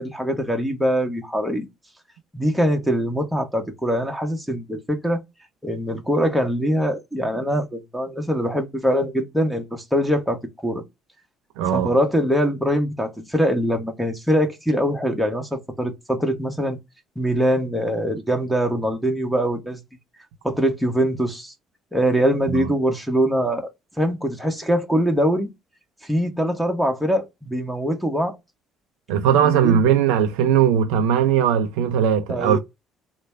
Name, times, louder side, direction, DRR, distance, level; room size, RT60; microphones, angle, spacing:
voice 1, 0.0-1.7 2.3-5.2 5.6-10.8 11.7-16.8 17.2-19.8 20.4-21.5 21.9-23.7 24.0-25.5 26.1-28.4 29.4-29.8 32.3-32.6, equal, ahead, 1.2 m, -23 dB
voice 2, 11.6-11.9 22.5-22.7 29.1-32.6, right 9 dB, 80° right, 0.4 m, -19 dB
3.2 x 2.2 x 3.2 m
hypercardioid pair, 60°, 0 cm